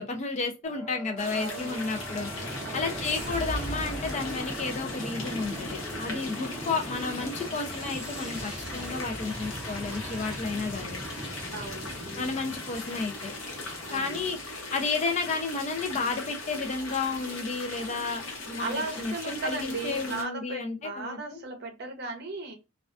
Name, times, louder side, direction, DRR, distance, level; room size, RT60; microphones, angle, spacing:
voice 1, 0.0-2.3 2.7-11.0 12.2-13.3 13.9-14.4 14.7-21.4, left 4 dB, 35° left, 0.4 m, -32 dB
sound 1, 0.6-14.4, right 1 dB, 5° right, 0.7 m, -39 dB
sound 2, 1.2-20.2, left 3 dB, 75° left, 0.8 m, -39 dB
voice 2, 1.3-2.2 2.6-3.0 5.8-6.4 11.5-12.6 13.9-14.3 18.6-22.6, right 3 dB, 55° right, 0.6 m, -37 dB
2.3 x 2.3 x 2.3 m
head